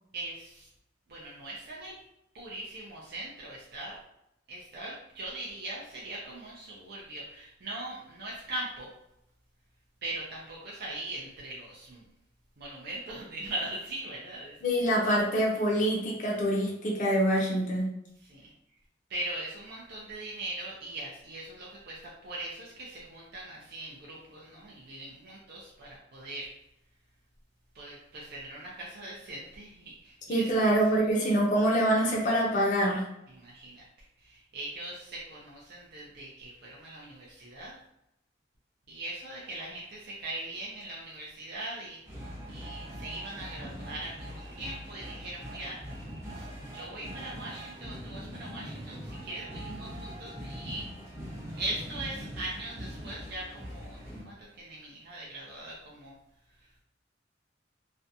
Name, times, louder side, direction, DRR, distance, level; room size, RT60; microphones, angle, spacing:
voice 1, 0.1-0.7 1.1-1.9 2.3-4.0 4.5-8.9 10.0-12.0 12.6-14.8 18.2-18.5 19.1-26.5 27.7-31.0 33.3-33.8 34.2-37.8 38.9-46.1 46.3-50.9 51.6-54.0 54.2-56.2, right 2 dB, 55° right, -5 dB, 0.5 m, -40 dB
voice 2, 14.6-17.9 30.3-33.0, right 1 dB, 40° left, -2 dB, 0.5 m, -25 dB
sound 1, 42.0-54.2, equal, 15° right, 0.8 m, -42 dB
2.5 x 2.2 x 2.6 m, 0.83 s
head